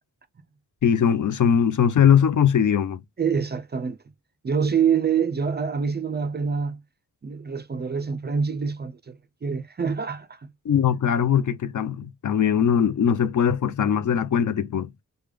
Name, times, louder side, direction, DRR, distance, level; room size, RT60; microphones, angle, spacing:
voice 1, 0.8-3.0 10.6-14.9, left 8 dB, 55° left, 0.5 m, -20 dB
voice 2, 3.2-4.0 4.4-6.8 7.2-10.5, right 6 dB, 30° right, 0.4 m, -26 dB
3.3 x 2.2 x 3.2 m
cardioid pair, 60°, 36 cm